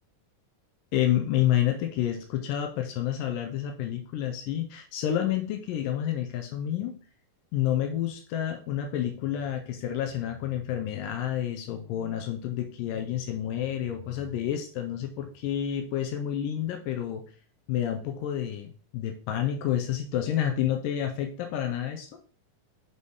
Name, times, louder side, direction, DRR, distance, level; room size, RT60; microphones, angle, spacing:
voice 1, 0.9-7.0 7.5-17.2 17.7-22.2, left 11 dB, 90° left, 4 dB, 2.6 m, -29 dB
6.6 x 5.0 x 3.6 m, 0.39 s
omnidirectional pair, 3.8 m